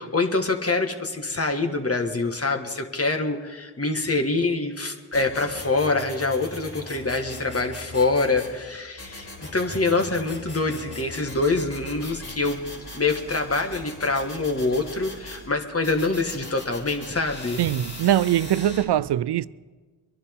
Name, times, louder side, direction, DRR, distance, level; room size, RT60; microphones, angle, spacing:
voice 1, 0.0-12.6 12.9-17.6, left 3 dB, 35° left, 1.7 m, -25 dB
sound 1, 5.1-8.6 9.0-15.4 15.8-18.8, left 1 dB, 85° left, 4.6 m, -40 dB
voice 2, 17.6-19.5, right 12 dB, 70° right, 0.5 m, -22 dB
23.5 x 11.0 x 3.8 m
cardioid pair, 50°, 42 cm